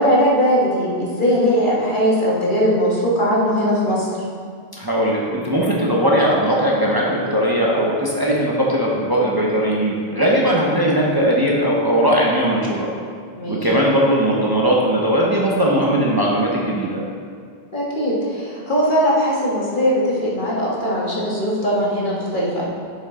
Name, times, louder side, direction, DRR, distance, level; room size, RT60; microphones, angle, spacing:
voice 1, 0.0-4.2 13.3-13.7 17.7-22.7, equal, 55° left, -5 dB, 1.8 m, -19 dB
voice 2, 4.8-12.9 13.5-17.0, equal, 25° right, -4 dB, 0.9 m, -19 dB
11.0 x 5.4 x 3.7 m, 2.1 s
omnidirectional pair, 1.0 m